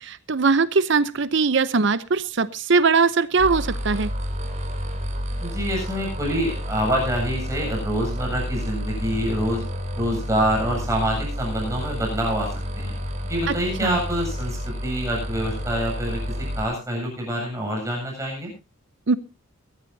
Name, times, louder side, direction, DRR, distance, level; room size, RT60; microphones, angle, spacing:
voice 1, 0.0-4.1 13.5-13.6 13.8-14.0 19.1-19.2, right 4 dB, 55° right, 15 dB, 0.7 m, -21 dB
sound 1, 3.4-16.6, equal, 35° right, 3.2 m, -30 dB
voice 2, 5.4-9.7 10.0-12.5 12.8-12.9 13.3-18.5, equal, 15° right, -1 dB, 7.7 m, -26 dB
22.0 x 14.0 x 2.7 m, 0.29 s
head